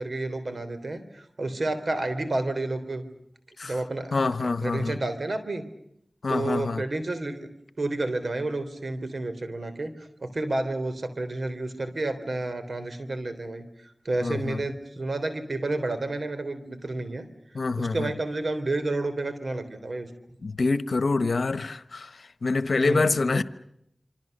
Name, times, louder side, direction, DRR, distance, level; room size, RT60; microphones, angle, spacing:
voice 1, 0.0-3.1 3.6-5.6 6.3-20.4 22.8-23.4, right 2 dB, 70° right, 3.6 m, -31 dB
voice 2, 4.1-5.0 6.2-6.8 14.2-14.6 17.5-18.1 20.4-23.4, left 3 dB, 85° left, 1.1 m, -26 dB
27.5 x 25.5 x 6.7 m
cardioid pair, 45°, 0 cm